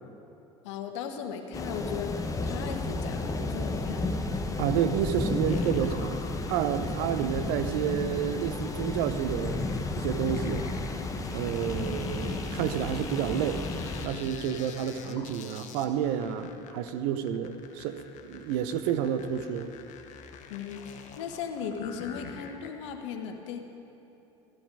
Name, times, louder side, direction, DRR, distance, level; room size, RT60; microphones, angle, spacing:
voice 1, 0.6-2.2 2.4-4.1 20.5-23.6, left 7 dB, 75° left, 6 dB, 1.2 m, -37 dB
sound 1, 1.5-14.1, left 2 dB, 20° left, 1.3 m, -32 dB
voice 2, 4.6-6.2 6.5-9.6 10.0-10.7 11.3-13.6 14.0-18.0 18.3-19.7, right 9 dB, 65° right, 10 dB, 0.8 m, -30 dB
sound 2, 5.5-23.0, left 6 dB, 50° left, 1.1 m, -45 dB
14.0 x 11.5 x 4.9 m, 3.0 s
hypercardioid pair, 75°, 16 cm